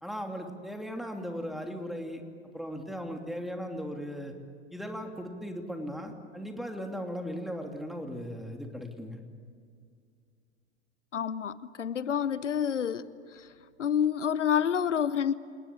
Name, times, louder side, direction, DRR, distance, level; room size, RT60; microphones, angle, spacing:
voice 1, 0.0-2.2 2.5-4.3 4.7-9.2, equal, ahead, 2.9 m, -37 dB
voice 2, 11.1-13.0 13.8-15.3, left 8 dB, 90° left, 0.8 m, -28 dB
28.0 x 19.5 x 8.7 m
hypercardioid pair, 100°, 35 cm